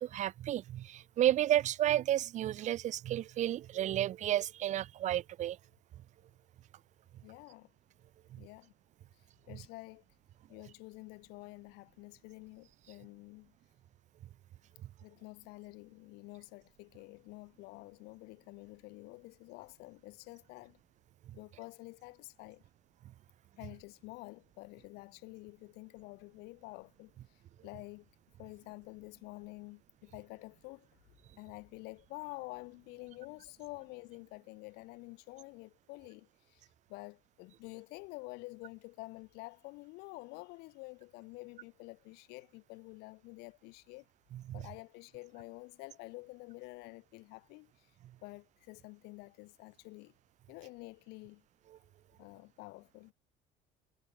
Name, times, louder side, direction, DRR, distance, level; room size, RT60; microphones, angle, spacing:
voice 1, 0.0-5.6 44.5-44.6, right 12 dB, 50° right, 0.4 m, -31 dB
voice 2, 7.2-7.7 8.4-8.7 9.5-10.0 10.5-13.6 15.0-20.8 21.3-22.6 23.6-28.1 28.4-30.9 31.4-44.1 44.5-47.9 48.2-50.1 50.5-51.4 52.2-53.1, left 25 dB, 85° left, 5.2 m, -49 dB
cardioid pair, 95°, 16 cm